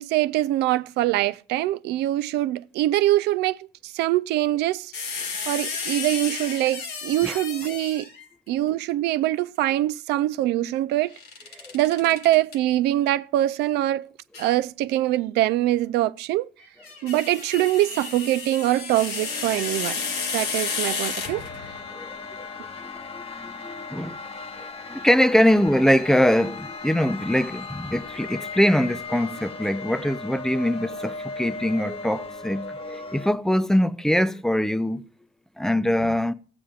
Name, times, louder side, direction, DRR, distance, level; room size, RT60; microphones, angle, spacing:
voice 1, 0.0-3.6 3.8-4.9 5.5-8.1 8.5-11.1 11.7-14.1 14.4-16.5 17.0-20.1 20.3-21.4, right 15 dB, 80° right, 0.4 m, -23 dB
sound 1, 4.9-8.2 11.1-12.6 14.3-14.5 16.6-21.8, left 5 dB, 65° left, 1.7 m, -32 dB
sound 2, 18.8-33.3, left 4 dB, 35° left, 0.9 m, -38 dB
voice 2, 21.9-22.5 23.1-24.2 24.6-35.0 35.6-36.3, equal, 5° left, 0.4 m, -23 dB
15.0 x 8.8 x 2.4 m
cardioid pair, 110°, 17 cm